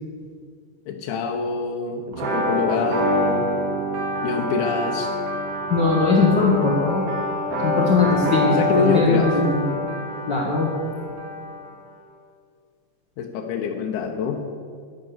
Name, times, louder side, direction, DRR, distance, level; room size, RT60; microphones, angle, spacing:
voice 1, 0.9-3.5 4.2-5.1 8.5-9.3 13.2-14.4, left 5 dB, 75° left, 2 dB, 2.2 m, -25 dB
sound 1, 2.1-11.7, left 1 dB, 70° right, 3.1 m, -26 dB
voice 2, 5.7-7.1 7.6-9.6 10.3-10.7, left 3 dB, 45° left, -3 dB, 1.5 m, -20 dB
11.0 x 10.5 x 6.9 m, 2.2 s
omnidirectional pair, 3.8 m